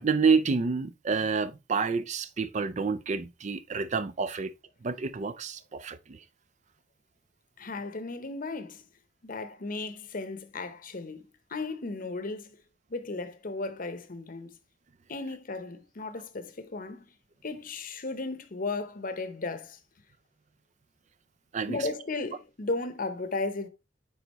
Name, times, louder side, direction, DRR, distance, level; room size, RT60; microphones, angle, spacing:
voice 1, 0.0-4.5 4.8-6.2 21.5-21.8, right 5 dB, 40° right, 0.4 m, -28 dB
voice 2, 7.6-8.9 9.2-12.6 12.9-14.5 15.1-17.1 17.4-19.8 21.7-23.7, left 3 dB, 45° left, 0.9 m, -35 dB
9.7 x 4.0 x 3.0 m
head